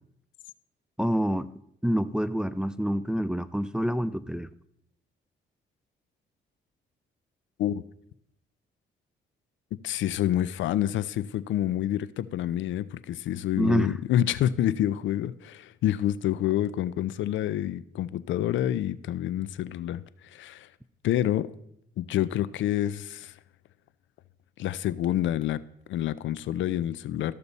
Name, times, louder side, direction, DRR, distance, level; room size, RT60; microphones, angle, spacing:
voice 1, 1.0-1.5 1.8-4.5 13.6-13.9, equal, 5° right, 0.3 m, -27 dB
voice 2, 9.8-20.0 20.3-20.7 21.0-21.5 22.0-23.3 24.6-25.6 25.9-27.4, left 12 dB, 75° left, 0.5 m, -28 dB
13.5 x 6.7 x 4.1 m
cardioid pair, 90°, 20 cm